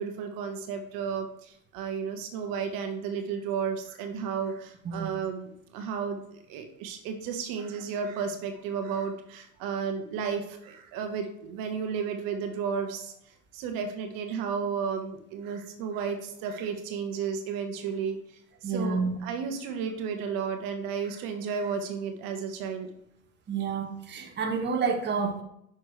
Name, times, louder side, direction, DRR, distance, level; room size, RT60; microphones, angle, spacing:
voice 1, 0.0-13.1 13.5-18.2 18.6-22.9, right 6 dB, 55° right, 5 dB, 1.3 m, -33 dB
voice 2, 4.8-5.2 18.6-19.1 23.5-25.4, right 5 dB, 25° right, 3 dB, 1.3 m, -29 dB
9.3 x 6.3 x 3.3 m, 0.75 s
hypercardioid pair, 90°, 42 cm